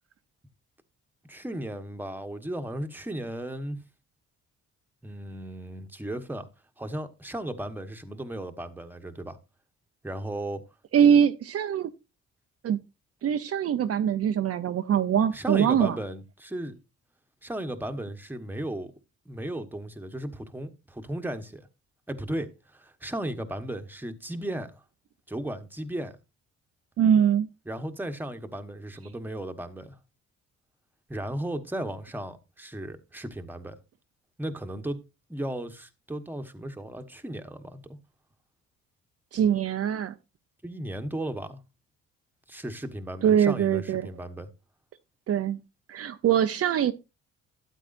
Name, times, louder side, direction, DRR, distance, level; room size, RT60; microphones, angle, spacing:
voice 1, 1.3-3.8 5.0-6.5 6.8-9.4 10.0-10.6 15.3-16.7 17.4-18.9 19.3-21.6 22.1-24.8 25.3-26.2 27.7-30.0 31.1-33.8 34.4-35.0 35.3-38.0 40.6-41.6 42.5-44.5, right 1 dB, 5° right, 1.1 m, -35 dB
voice 2, 10.9-11.9 12.6-12.8 13.2-16.0 27.0-27.5 39.3-40.1 43.2-44.1 45.3-45.6 45.9-46.9, right 9 dB, 50° right, 0.6 m, -23 dB
12.5 x 8.4 x 2.6 m
cardioid pair, 90°, 30 cm